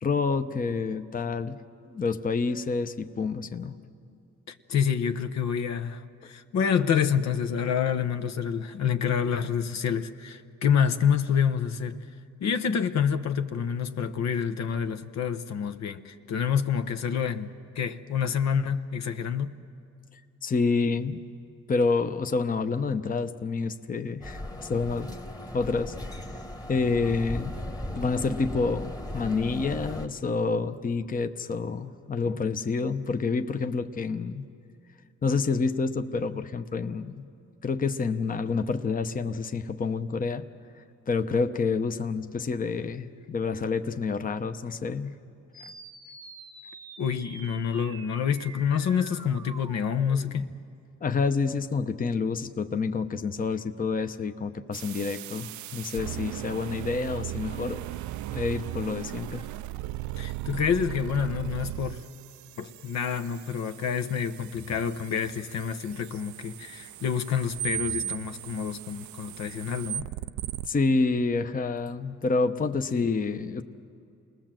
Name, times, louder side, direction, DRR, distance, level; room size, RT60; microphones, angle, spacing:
voice 1, 0.0-1.6 1.9-3.8 20.4-21.2 21.7-25.2 25.5-26.0 26.7-27.6 27.9-34.5 35.2-37.3 37.6-40.4 41.1-45.2 45.6-45.7 51.0-57.8 58.3-59.4 68.0-68.1 70.7-73.6, left 4 dB, 30° left, 0.8 m, -28 dB
voice 2, 4.5-12.0 12.4-19.5 47.0-50.5 60.2-62.0 62.6-70.1 73.0-73.4, left 7 dB, 65° left, 1.0 m, -28 dB
sound 1, 24.2-30.1, left 1 dB, 10° left, 1.4 m, -37 dB
sound 2, 45.5-50.5, right 2 dB, 10° right, 1.0 m, -46 dB
sound 3, 54.7-70.7, right 14 dB, 70° right, 0.5 m, -37 dB
28.0 x 19.5 x 7.6 m
cardioid pair, 90°, 30 cm